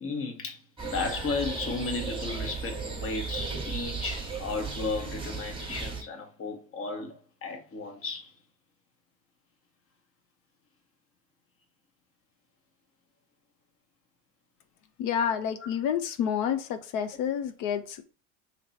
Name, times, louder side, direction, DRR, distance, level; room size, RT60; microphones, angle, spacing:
voice 1, 0.0-8.3 15.6-15.7, left 4 dB, 35° left, 1.1 m, -34 dB
sound 1, 0.8-6.0, right 4 dB, 10° right, 1.2 m, -35 dB
voice 2, 15.0-18.0, left 8 dB, 50° left, 0.5 m, -29 dB
2.9 x 2.9 x 4.1 m
hypercardioid pair, 75°, 40 cm